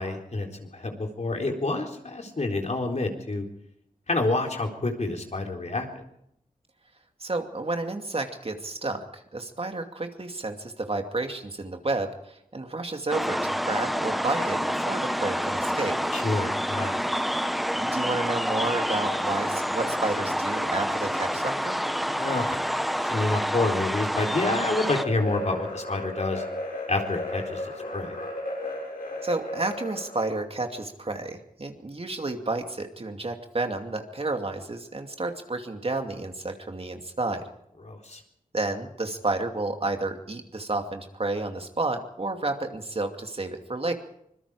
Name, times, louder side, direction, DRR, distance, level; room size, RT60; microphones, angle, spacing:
voice 1, 0.0-3.4 4.1-6.0 16.1-17.0 22.2-22.6 23.1-26.4 26.9-28.1 37.8-38.2, left 2 dB, 50° left, 2 dB, 4.0 m, -28 dB
voice 2, 7.2-9.1 9.3-16.0 17.8-21.8 29.2-37.4 38.5-43.9, right 2 dB, 40° right, 5 dB, 2.5 m, -31 dB
sound 1, 13.1-25.0, equal, ahead, 1.2 m, -28 dB
sound 2, 24.9-30.3, left 1 dB, 80° left, 7.9 m, -35 dB
25.5 x 21.5 x 5.0 m, 0.75 s
cardioid pair, 60°, 14 cm